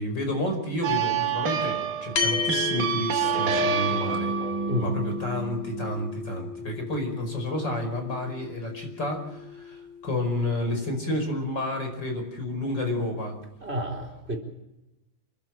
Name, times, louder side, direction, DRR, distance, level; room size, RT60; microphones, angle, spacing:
voice 1, 0.0-4.3 4.8-13.4, left 1 dB, 30° left, 4 dB, 5.6 m, -30 dB
Atonal Electric Guitar Riff, 0.8-5.9, right 7 dB, 65° right, 2.7 m, -28 dB
sound 1, 2.2-10.8, left 6 dB, 45° left, 2.5 m, -34 dB
voice 2, 13.6-14.4, equal, 15° right, 5 dB, 3.9 m, -30 dB
30.0 x 12.0 x 9.2 m, 0.94 s
omnidirectional pair, 4.3 m